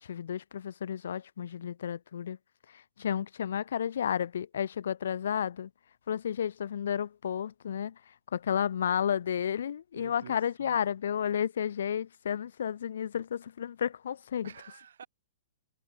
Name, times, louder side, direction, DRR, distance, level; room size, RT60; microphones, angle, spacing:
voice 1, 0.0-2.4 2.7-5.7 6.1-8.0 8.3-14.5, left 8 dB, 70° left, 2.0 m, -32 dB
voice 2, 9.9-10.8 14.4-15.1, right 8 dB, 75° right, 6.5 m, -49 dB
hypercardioid pair, 125°, 0 cm